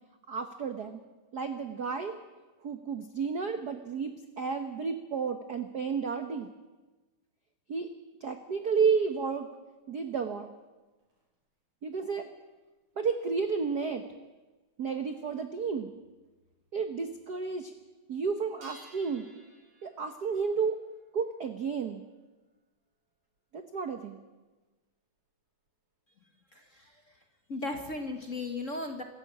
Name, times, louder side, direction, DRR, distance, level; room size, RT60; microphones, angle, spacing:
voice 1, 0.3-1.0 1.3-2.2 2.6-6.5 7.7-7.9 8.2-9.5 9.9-10.5 11.8-12.3 13.0-14.0 14.8-15.9 16.7-17.7 18.1-19.2 19.8-20.8 21.1-22.0 23.5-24.2, right 5 dB, 80° right, 8 dB, 0.9 m, -31 dB
sound 1, 9.6-11.5 12.1-13.7 14.3-14.7 15.1-15.2 15.5-15.6 15.8-16.9 17.2-17.8 18.1-26.0, right 1 dB, 55° right, 5.2 m, -61 dB
voice 2, 26.5-26.9 27.5-29.0, left 2 dB, 35° left, 5 dB, 1.3 m, -36 dB
25.0 x 14.0 x 8.3 m, 1.2 s
omnidirectional pair, 3.5 m